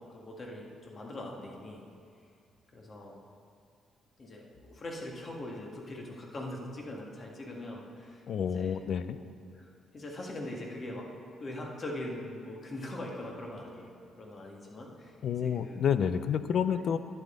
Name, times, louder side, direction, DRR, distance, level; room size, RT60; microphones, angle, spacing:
voice 1, 0.0-1.9 2.7-3.2 4.2-8.2 8.5-8.8 9.1-9.2 9.5-9.7 9.9-11.1 11.4-15.2 15.4-15.8 16.7-16.8, left 1 dB, 40° left, -1 dB, 1.9 m, -42 dB
voice 2, 8.3-9.2 15.2-17.0, left 8 dB, 65° left, 12 dB, 0.5 m, -29 dB
11.5 x 9.1 x 3.9 m, 2.4 s
cardioid pair, 90°, 0 cm